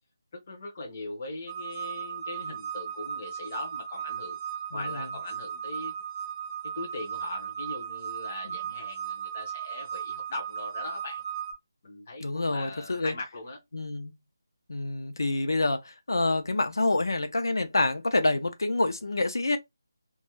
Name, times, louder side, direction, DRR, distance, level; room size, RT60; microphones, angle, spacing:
voice 1, 0.3-4.4 4.7-5.9 6.7-11.2 11.8-13.6, left 2 dB, 20° left, 0.5 m, -40 dB
sound 1, 1.5-11.5, right 8 dB, 50° right, 0.6 m, -36 dB
voice 2, 4.7-5.1 8.5-8.6 12.2-13.1 13.7-14.1 14.7-19.6, left 2 dB, 85° left, 0.5 m, -27 dB
2.5 x 2.2 x 3.0 m
figure-of-eight pair, 180°, 2 cm